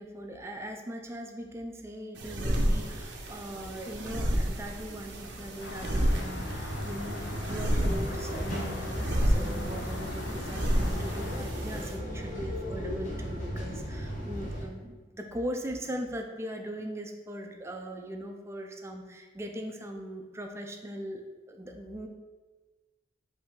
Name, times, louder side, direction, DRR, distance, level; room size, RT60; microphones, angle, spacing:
voice 1, 0.0-21.2 21.5-22.1, right 1 dB, 15° right, 3 dB, 0.4 m, -40 dB
sound 1, 2.2-12.0, equal, 75° right, 0.6 m, -31 dB
Traffic noise roadway noise, 5.6-11.4, left 3 dB, 80° left, 0.4 m, -42 dB
sound 2, 6.2-14.6, equal, 45° left, 1.1 m, -36 dB
5.0 x 2.7 x 3.7 m, 1.3 s
head